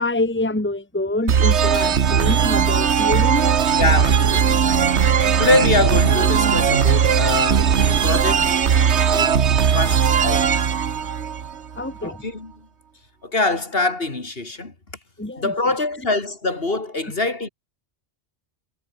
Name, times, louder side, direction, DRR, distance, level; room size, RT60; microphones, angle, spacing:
voice 1, 0.0-3.5 11.7-12.2 15.2-15.5 17.0-17.1, left 2 dB, 10° left, 1.7 m, -26 dB
sound 1, 1.3-11.9, right 7 dB, 85° right, 1.4 m, -18 dB
voice 2, 3.8-4.9 5.4-8.5 9.1-10.7 12.0-12.5 13.2-14.7 15.4-17.5, left 2 dB, 60° left, 3.1 m, -24 dB
omnidirectional pair, 1.1 m